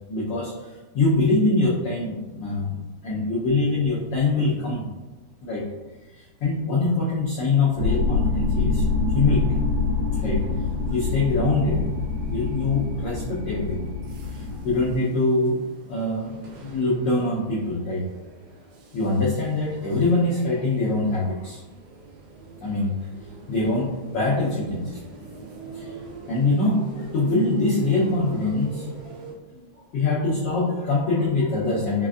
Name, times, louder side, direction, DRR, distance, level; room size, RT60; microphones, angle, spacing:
voice 1, 0.1-4.8 5.4-5.6 6.1-8.8 9.1-9.6 10.1-10.4 10.8-11.8 12.3-13.9 14.3-18.0 18.9-21.6 22.6-22.9 23.5-25.0 25.7-26.0 26.3-28.9 29.6-29.7 29.9-32.1, left 2 dB, 85° left, -6 dB, 1.2 m, -24 dB
sound 1, 7.7-15.0, left 4 dB, 65° left, 1.9 m, -25 dB
sound 2, 10.2-29.3, right 3 dB, 85° right, 2.2 m, -45 dB
5.0 x 2.4 x 2.4 m, 1.1 s
omnidirectional pair, 3.4 m